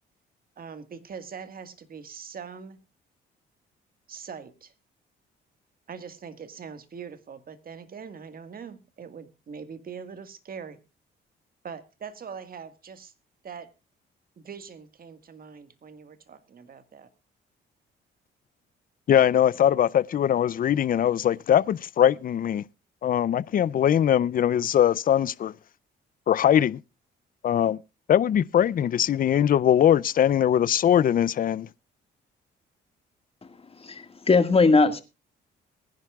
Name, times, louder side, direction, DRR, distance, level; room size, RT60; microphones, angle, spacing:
voice 1, 0.6-2.8 4.1-4.7 5.9-10.8 11.6-13.1 13.4-13.7 14.5-17.1, right 6 dB, 50° right, 1.7 m, -42 dB
voice 2, 19.1-22.6 23.0-25.5 26.3-26.8 27.4-27.8 28.1-31.7, left 10 dB, 45° left, 0.5 m, -21 dB
voice 3, 33.8-35.0, left 3 dB, 30° left, 1.8 m, -20 dB
21.5 x 10.5 x 2.4 m
cardioid pair, 90°, 20 cm